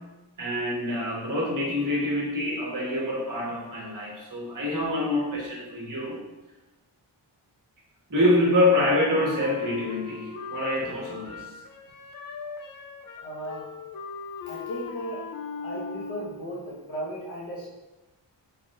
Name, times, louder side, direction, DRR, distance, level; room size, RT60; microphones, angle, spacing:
voice 1, 0.4-6.2 8.1-11.4, left 1 dB, 45° right, -4 dB, 1.4 m, -26 dB
Wind instrument woodwind instrument, 8.9-16.5, left 5 dB, 50° left, 0.5 m, -39 dB
voice 2, 13.2-13.6 14.5-15.2 15.6-17.7, equal, 85° left, -7 dB, 1.4 m, -36 dB
4.2 x 4.1 x 2.5 m, 1.1 s
wide cardioid pair, 105°, 45 cm